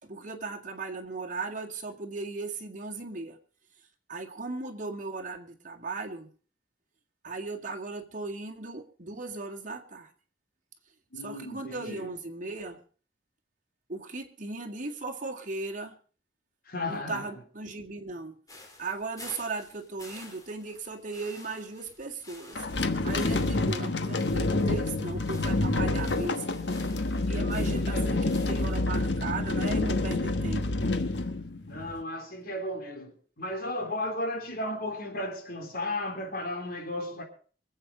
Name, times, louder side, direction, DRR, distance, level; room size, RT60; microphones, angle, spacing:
voice 1, 0.0-3.4 4.1-6.3 7.2-10.1 11.2-12.8 13.9-16.0 16.9-18.4 18.8-22.6 23.0-26.6 27.3-30.9, right 3 dB, 50° right, 2.1 m, -37 dB
voice 2, 11.1-12.1 16.7-17.3 23.5-23.7 27.5-28.3 31.7-37.2, left 1 dB, 60° left, 3.5 m, -35 dB
sound 1, 18.5-28.8, left 2 dB, 20° left, 3.5 m, -51 dB
sound 2, 22.5-32.0, left 2 dB, 85° left, 1.3 m, -28 dB
24.5 x 8.1 x 5.1 m
head